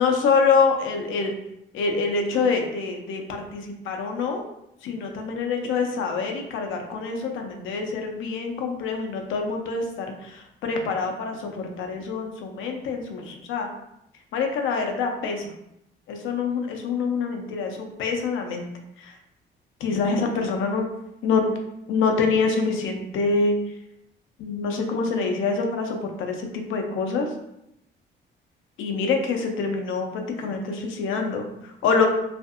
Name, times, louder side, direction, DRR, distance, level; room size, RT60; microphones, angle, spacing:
voice 1, 0.0-1.3 1.7-3.2 3.5-4.4 4.8-13.7 14.3-15.5 16.1-18.7 19.0-19.1 19.8-20.9 21.2-21.4 21.9-23.6 24.4-27.3 28.8-32.1, left 4 dB, 80° left, 3 dB, 0.5 m, -25 dB
2.7 x 2.5 x 2.4 m, 0.81 s
cardioid pair, 90°, 20 cm